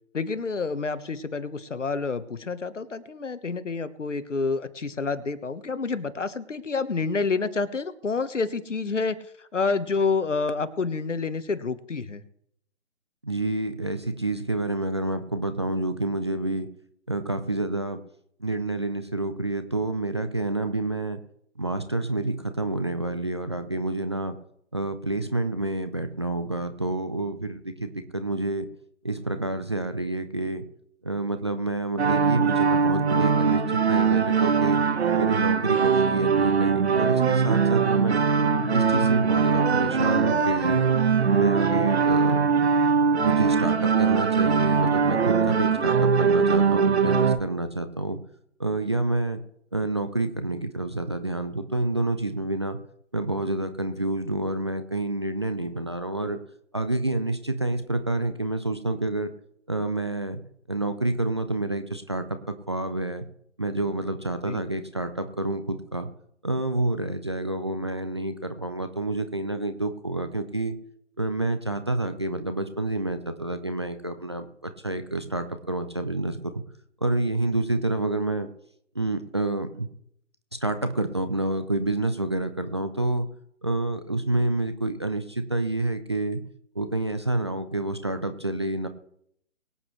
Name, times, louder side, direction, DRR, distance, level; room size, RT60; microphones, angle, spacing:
voice 1, 0.1-12.2 64.5-64.6, left 4 dB, 70° left, 14 dB, 1.2 m, -28 dB
voice 2, 13.2-16.7 17.1-18.0 18.4-21.2 21.6-24.4 24.7-28.7 29.0-30.7 31.0-34.8 35.2-38.2 38.7-40.8 41.3-42.4 43.2-48.2 48.6-49.4 49.7-52.8 53.1-56.4 56.7-59.3 59.7-60.4 60.7-62.4 62.7-63.3 63.6-66.1 66.4-70.8 71.2-76.6 77.0-78.5 78.9-79.9 80.6-83.3 83.6-86.4 86.7-88.9, right 2 dB, 25° right, 9 dB, 0.5 m, -28 dB
sound 1, 32.0-47.4, right 6 dB, 60° right, 1.3 m, -21 dB
23.0 x 8.2 x 3.1 m, 0.71 s
figure-of-eight pair, 145°, 37 cm